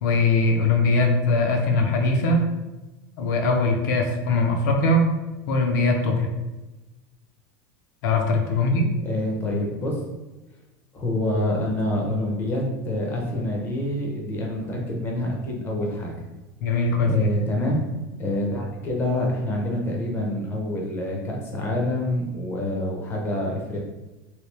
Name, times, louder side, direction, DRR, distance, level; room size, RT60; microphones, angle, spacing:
voice 1, 0.0-2.4 3.2-5.1 5.5-6.3 8.0-8.9 16.6-17.1, left 2 dB, 65° left, 3 dB, 0.6 m, -21 dB
voice 2, 9.0-10.0 10.9-16.3 17.0-17.8 18.2-23.8, left 1 dB, 20° left, -1 dB, 0.6 m, -26 dB
3.2 x 2.8 x 3.1 m, 1.1 s
supercardioid pair, 175°, 11 cm